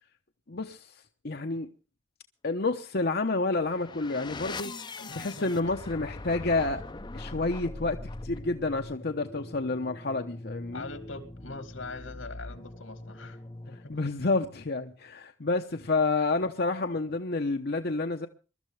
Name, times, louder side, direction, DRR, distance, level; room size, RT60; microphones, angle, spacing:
voice 1, 0.5-0.9 1.2-1.7 2.4-4.7 5.1-6.8 7.1-10.8 13.9-18.3, left 3 dB, 55° left, 0.9 m, -29 dB
sound 1, 3.4-14.1, left 2 dB, 25° left, 0.7 m, -42 dB
voice 2, 5.0-5.5 6.0-6.1 10.7-13.9, left 3 dB, 85° left, 2.5 m, -42 dB
23.0 x 13.0 x 3.3 m
head